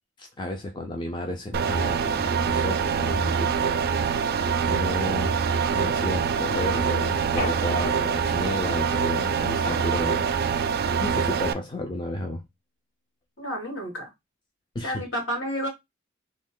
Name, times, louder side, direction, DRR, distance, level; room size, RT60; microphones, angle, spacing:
voice 1, 0.2-3.6 3.9-4.0 4.6-10.3 11.0-12.4 14.7-15.0, left 1 dB, 25° left, 0.4 m, -32 dB
sound 1, 1.5-11.5, right 6 dB, 50° right, 0.3 m, -25 dB
sound 2, 7.4-8.4 9.6-10.5, left 1 dB, 40° left, 0.7 m, -35 dB
voice 2, 13.4-14.1 14.8-15.7, equal, 65° left, 1.9 m, -30 dB
3.1 x 2.2 x 3.6 m
head